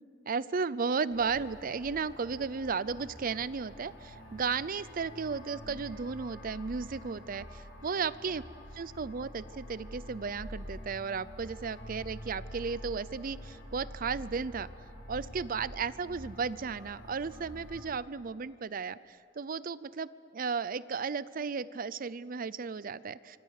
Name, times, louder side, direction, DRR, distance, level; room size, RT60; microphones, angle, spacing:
voice 1, 0.3-8.4 8.7-14.7 15.1-23.4, right 5 dB, 50° right, 17 dB, 0.5 m, -34 dB
sound 1, 1.1-17.8, equal, 80° left, 6.9 m, -47 dB
27.0 x 25.0 x 6.6 m, 2.5 s
head